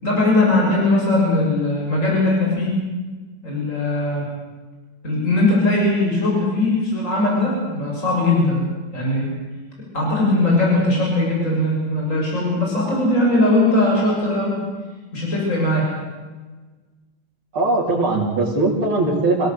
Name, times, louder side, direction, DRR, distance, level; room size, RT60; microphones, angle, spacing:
voice 1, 0.0-2.7 3.4-4.3 5.0-8.7 8.9-9.3 9.9-14.6 15.1-15.8, left 2 dB, 35° left, -3 dB, 7.2 m, -19 dB
voice 2, 17.5-19.5, right 2 dB, 90° right, -5 dB, 4.2 m, -20 dB
27.0 x 17.5 x 8.0 m, 1.3 s
omnidirectional pair, 2.2 m